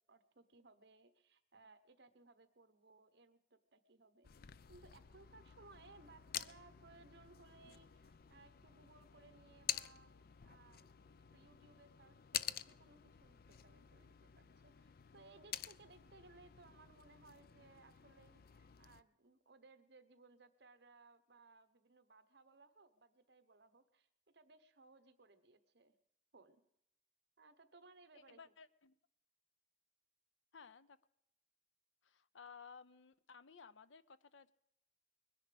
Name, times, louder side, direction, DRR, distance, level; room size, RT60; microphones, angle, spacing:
voice 1, 0.0-4.3 4.7-10.1 10.4-25.9 26.3-26.6 27.4-28.4, right 3 dB, 60° right, 12 dB, 1.2 m, -64 dB
sound 1, 4.2-19.0, left 11 dB, 55° left, 0.5 m, -49 dB
voice 2, 28.1-28.9 30.5-31.0 32.0-34.5, left 5 dB, 90° left, 15 dB, 0.8 m, -58 dB
21.5 x 10.5 x 5.2 m, 0.78 s
head